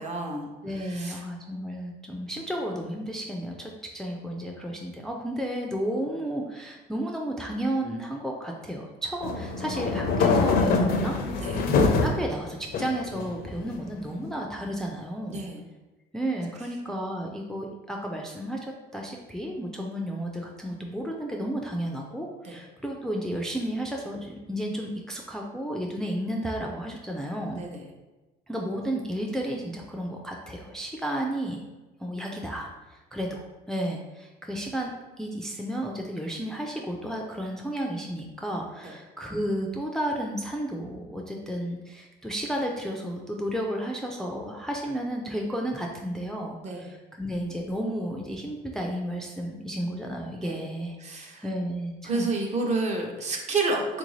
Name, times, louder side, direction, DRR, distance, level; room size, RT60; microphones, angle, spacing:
voice 1, 0.0-0.5 0.8-1.2 11.4-11.7 15.3-15.6 22.4-22.5 27.5-27.8 38.8-38.9 46.6-46.8 50.4-50.6 51.0-51.4 52.0-54.0, right 3 dB, 45° right, 1 dB, 0.7 m, -30 dB
voice 2, 0.6-11.4 12.0-15.5 16.1-27.6 28.5-31.6 32.0-34.9 35.2-52.3, equal, 5° left, 0 dB, 0.3 m, -32 dB
sound 1, 9.2-12.2 12.7-13.6, left 4 dB, 65° left, 0.5 m, -24 dB
3.8 x 2.5 x 3.1 m, 1.1 s
cardioid pair, 110°, 17 cm